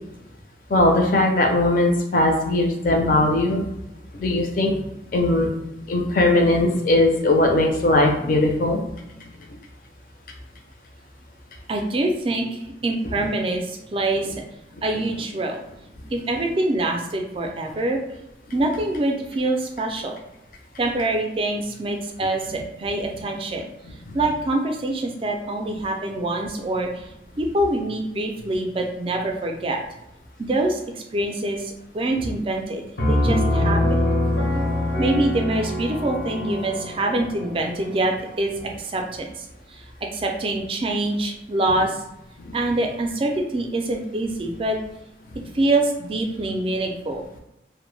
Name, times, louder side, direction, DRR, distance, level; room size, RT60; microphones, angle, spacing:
voice 1, 0.7-3.6 4.2-4.8 5.1-5.5 5.9-8.8 13.2-13.3 22.5-22.6 34.6-34.7 42.5-42.6, left 2 dB, 50° left, 1 dB, 0.5 m, -19 dB
voice 2, 11.7-14.4 14.8-15.6 16.1-18.0 18.5-20.2 20.8-23.7 24.1-27.1 27.4-29.8 30.4-34.1 35.0-42.1 42.5-44.8 45.5-47.2, right 2 dB, 30° right, 3 dB, 0.3 m, -25 dB
Piano, 33.0-38.5, left 1 dB, 85° left, 0.7 m, -24 dB
2.1 x 2.1 x 3.1 m, 0.87 s
head